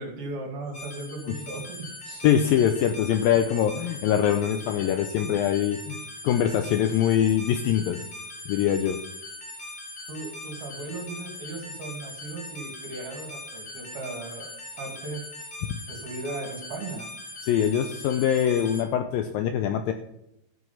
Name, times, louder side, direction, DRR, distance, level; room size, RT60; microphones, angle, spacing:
voice 1, 0.0-2.3 10.1-14.5 14.8-15.2 15.9-17.1, right 3 dB, 65° right, 2 dB, 4.1 m, -37 dB
sound 1, 0.7-18.8, left 2 dB, 45° left, 2.2 m, -41 dB
voice 2, 2.2-6.0 6.2-8.1 8.5-9.0 15.7-15.8 17.4-19.9, left 9 dB, 80° left, 7 dB, 2.1 m, -23 dB
13.5 x 8.1 x 5.7 m, 0.82 s
omnidirectional pair, 4.8 m